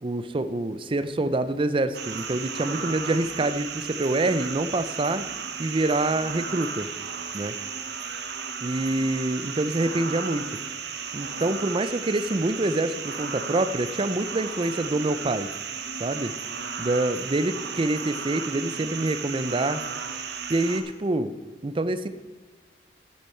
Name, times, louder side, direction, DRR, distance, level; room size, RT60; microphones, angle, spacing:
voice 1, 0.0-5.2 5.6-6.9 7.3-7.6 8.6-10.6 11.1-15.5 16.0-16.3 16.8-19.8 20.5-21.3 21.6-22.1, right 2 dB, 30° right, 12 dB, 0.5 m, -26 dB
sound 1, 1.9-20.8, right 6 dB, 60° right, 0.9 m, -34 dB
12.0 x 8.6 x 4.4 m, 1.4 s
head